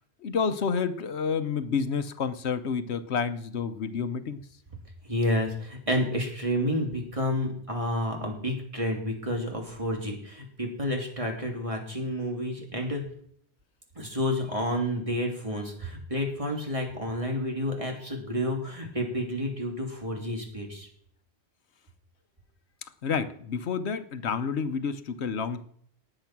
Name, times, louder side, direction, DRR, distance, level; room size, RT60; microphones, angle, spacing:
voice 1, 0.2-4.4 23.0-25.6, left 6 dB, 75° left, 11 dB, 1.2 m, -29 dB
voice 2, 5.0-13.0 13.9-20.9, left 1 dB, 30° right, 1 dB, 3.1 m, -30 dB
19.0 x 7.9 x 6.0 m, 0.64 s
omnidirectional pair, 1.1 m